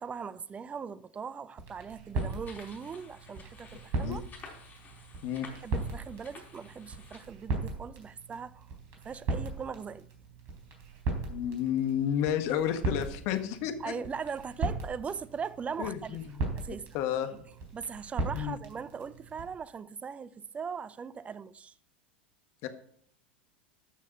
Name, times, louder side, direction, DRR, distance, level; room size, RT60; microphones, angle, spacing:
voice 1, 0.0-4.2 5.5-8.7 9.0-10.1 13.8-16.2 16.5-17.0 17.3-17.4 17.7-21.7, right 6 dB, 25° right, 0.6 m, -39 dB
sound 1, 1.6-19.4, right 3 dB, 50° right, 3.9 m, -38 dB
sound 2, 2.1-7.2, left 4 dB, 30° left, 4.4 m, -52 dB
voice 2, 11.3-13.9 15.8-16.5 16.9-17.3 18.3-18.6 22.6-22.7, left 10 dB, 55° left, 1.5 m, -31 dB
13.0 x 6.3 x 5.1 m
hypercardioid pair, 85°, 6 cm